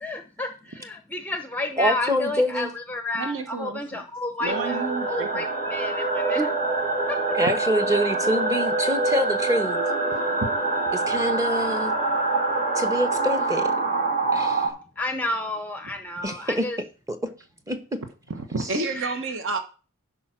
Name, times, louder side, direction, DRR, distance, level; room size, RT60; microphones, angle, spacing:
voice 1, 0.0-6.5 7.1-7.2 15.0-16.8 18.9-19.1, left 2 dB, 10° left, 0.7 m, -31 dB
voice 2, 1.8-2.7 6.3-6.4 7.3-9.8 10.9-11.9 12.8-13.7 14.3-14.7 16.2-16.6 17.1-17.2 17.7-17.8 18.6-18.7, equal, 15° right, 1.0 m, -25 dB
voice 3, 3.1-4.0 4.4-5.5 18.3-19.6, right 3 dB, 60° right, 1.2 m, -30 dB
sound 1, 4.4-14.7, right 3 dB, 40° right, 2.8 m, -25 dB
11.0 x 4.9 x 6.1 m
head